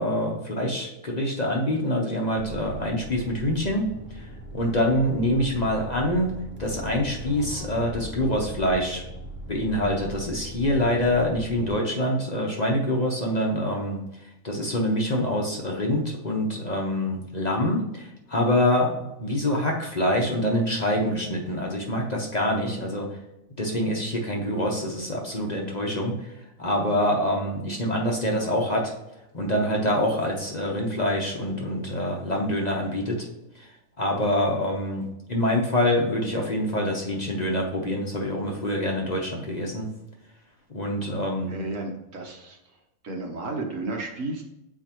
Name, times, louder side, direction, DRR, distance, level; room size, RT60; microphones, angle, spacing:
voice 1, 0.0-3.8 4.1-6.3 6.6-9.0 9.5-23.2 23.6-28.9 29.3-33.3 33.5-39.9 40.7-41.5, left 1 dB, 35° left, -1 dB, 1.0 m, -26 dB
sound 1, 2.4-11.7, right 1 dB, 15° left, 0.5 m, -39 dB
voice 2, 41.5-42.6 43.0-44.4, right 2 dB, 70° right, 2 dB, 1.5 m, -32 dB
7.1 x 4.6 x 3.0 m, 0.91 s
omnidirectional pair, 1.4 m